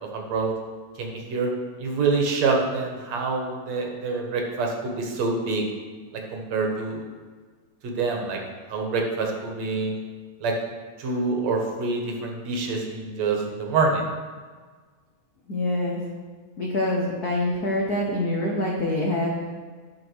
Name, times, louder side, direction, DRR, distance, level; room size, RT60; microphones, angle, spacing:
voice 1, 0.1-0.5 1.0-1.5 1.8-5.6 6.1-7.0 7.8-8.4 8.7-9.9 10.4-10.5 11.0-14.1, right 4 dB, 65° right, 1 dB, 2.5 m, -26 dB
voice 2, 15.5-16.0 16.6-19.4, left 1 dB, 70° left, -2 dB, 0.9 m, -25 dB
11.0 x 6.0 x 6.2 m, 1.5 s
omnidirectional pair, 3.4 m